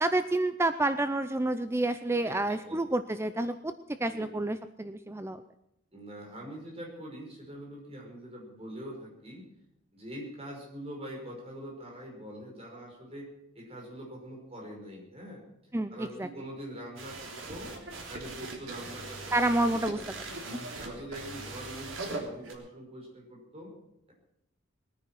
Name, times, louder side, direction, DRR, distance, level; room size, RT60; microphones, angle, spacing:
voice 1, 0.0-3.7 4.0-5.4 15.7-16.3 19.3-20.1 20.5-20.7, right 2 dB, 15° right, 11 dB, 0.5 m, -29 dB
voice 2, 2.2-2.8 4.0-4.3 5.9-9.4 9.9-13.3 13.5-15.5 15.9-17.7 18.1-20.3 20.8-23.7, equal, 30° right, -1 dB, 5.7 m, -44 dB
sound 1, 17.0-22.5, right 3 dB, 90° right, 3.3 m, -40 dB
20.5 x 10.0 x 6.3 m, 0.82 s
head